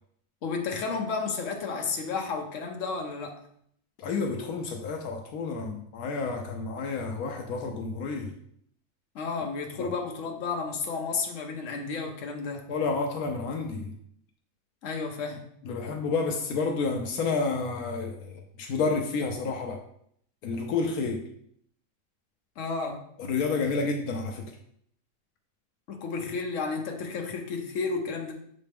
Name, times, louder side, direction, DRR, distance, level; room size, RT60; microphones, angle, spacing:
voice 1, 0.4-3.4 9.1-12.7 14.8-15.4 22.6-23.0 25.9-28.3, left 4 dB, 60° left, 2 dB, 1.2 m, -32 dB
voice 2, 4.0-8.3 9.8-9.9 12.7-13.9 15.6-19.8 20.4-21.2 23.2-24.5, left 4 dB, 80° left, 3 dB, 1.1 m, -30 dB
6.6 x 4.1 x 3.4 m, 0.68 s
omnidirectional pair, 1.5 m